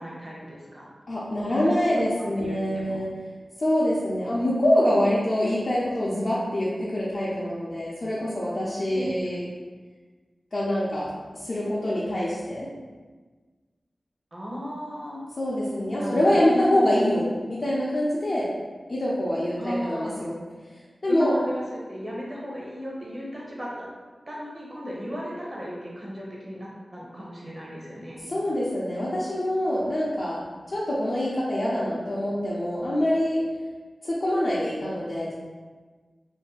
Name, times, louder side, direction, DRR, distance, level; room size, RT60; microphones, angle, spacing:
voice 1, 0.0-0.9 1.4-1.7 2.4-3.0 8.9-9.1 14.3-15.2 16.0-17.0 19.6-20.2 21.1-23.9 24.3-28.2, equal, 35° right, -5 dB, 0.8 m, -35 dB
voice 2, 1.1-3.1 3.6-9.5 10.5-12.7 15.4-18.5 18.9-20.4 21.0-21.3 28.3-33.4 34.0-35.3, left 1 dB, 55° left, -8 dB, 0.5 m, -25 dB
2.6 x 2.1 x 3.9 m, 1.4 s
wide cardioid pair, 85°, 0 cm